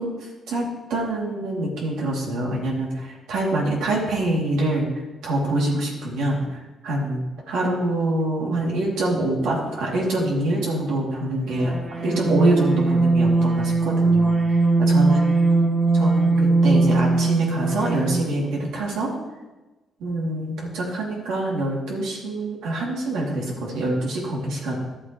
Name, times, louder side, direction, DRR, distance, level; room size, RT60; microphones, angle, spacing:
voice 1, 0.0-15.3 15.9-19.1 20.0-24.8, right 1 dB, 85° right, -3 dB, 2.5 m, -25 dB
sound 1, 11.5-18.3, right 3 dB, 40° right, 1.9 m, -20 dB
12.5 x 7.9 x 3.0 m, 1.1 s
cardioid pair, 90°, 0 cm